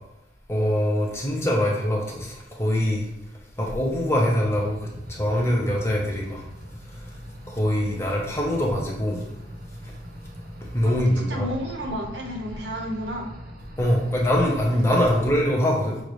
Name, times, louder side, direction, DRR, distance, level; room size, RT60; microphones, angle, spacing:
voice 1, 0.5-3.0 3.6-6.4 7.5-9.2 10.7-11.5 13.8-16.0, equal, 15° left, -2 dB, 0.9 m, -23 dB
sound 1, 4.4-15.2, equal, 50° right, 0.9 m, -41 dB
voice 2, 11.3-13.3, equal, 70° right, 0 dB, 1.1 m, -31 dB
6.6 x 2.6 x 3.1 m, 0.90 s
head